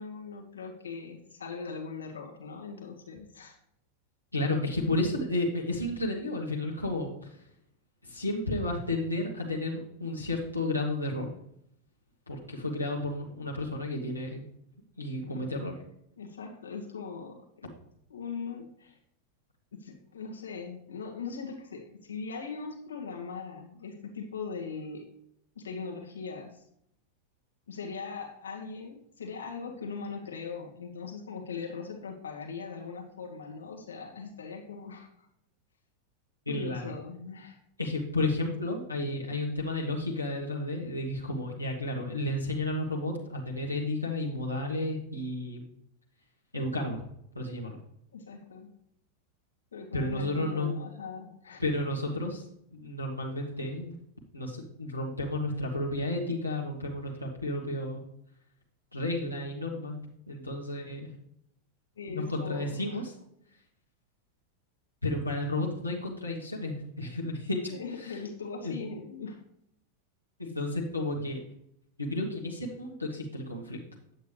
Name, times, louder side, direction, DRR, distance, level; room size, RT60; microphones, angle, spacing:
voice 1, 0.0-3.6 15.2-15.5 16.2-17.7 18.1-19.0 19.8-25.1 25.5-26.6 27.7-35.1 36.5-37.6 48.1-48.7 49.7-51.6 62.0-63.0 67.7-69.4, left 5 dB, 70° left, 0 dB, 1.5 m, -40 dB
voice 2, 4.3-7.1 8.0-11.3 12.3-14.4 15.0-15.7 36.5-36.8 37.8-45.6 46.5-47.0 47.3-47.8 49.9-50.7 51.6-52.4 52.7-53.9 54.3-58.0 58.9-60.0 60.3-61.1 62.1-63.1 65.0-68.2 68.6-68.8 70.4-71.4 72.0-73.8, left 2 dB, 85° left, -2 dB, 1.4 m, -32 dB
9.2 x 8.2 x 3.3 m, 0.73 s
figure-of-eight pair, 90°, 0 cm